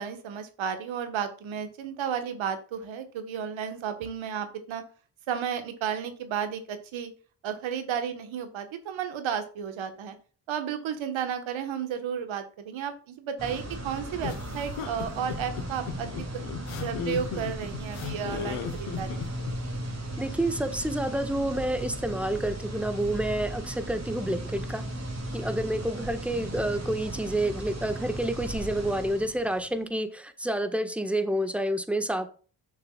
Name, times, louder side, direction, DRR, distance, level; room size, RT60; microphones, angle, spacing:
voice 1, 0.0-4.8 5.3-7.1 7.4-10.1 10.5-16.1 16.8-19.4, right 8 dB, 70° right, 8 dB, 1.5 m, -33 dB
sound 1, 13.4-29.7, right 1 dB, 35° right, 3.0 m, -36 dB
sound 2, 14.2-19.6, left 7 dB, 80° left, 1.3 m, -35 dB
voice 2, 20.2-24.8 25.3-32.3, right 1 dB, 5° right, 8 dB, 1.5 m, -29 dB
10.0 x 6.6 x 2.4 m, 0.39 s
hypercardioid pair, 45°, 49 cm